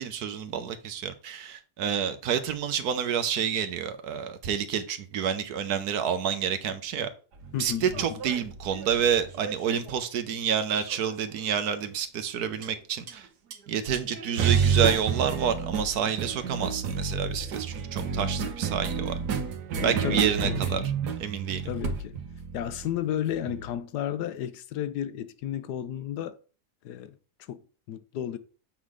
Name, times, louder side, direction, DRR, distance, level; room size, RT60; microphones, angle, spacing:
voice 1, 0.0-7.1 7.5-13.3 13.7-19.2 19.8-20.8 21.2-21.7, right 8 dB, 75° right, 1.3 m, -29 dB
sound 1, 7.4-10.0 10.9-11.4 12.6-12.8 13.1-13.2 13.5-13.6 13.9-23.7, right 6 dB, 90° right, 1.5 m, -30 dB
voice 2, 7.5-8.0 19.8-20.8 21.7-22.2 22.5-26.4 26.8-27.2 27.5-27.6 27.9-28.4, left 10 dB, 85° left, 1.3 m, -33 dB
7.3 x 3.9 x 4.9 m
omnidirectional pair, 1.7 m